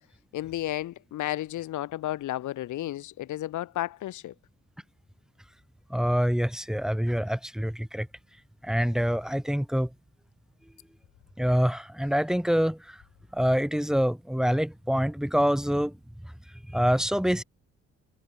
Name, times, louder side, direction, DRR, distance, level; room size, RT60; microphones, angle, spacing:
voice 1, 0.3-4.3, left 14 dB, 75° left, 1.4 m, -32 dB
voice 2, 5.9-8.1 8.6-9.9 11.4-12.9 13.3-15.9 16.7-17.4, equal, ahead, 6.3 m, -25 dB
cardioid pair, 90°, 30 cm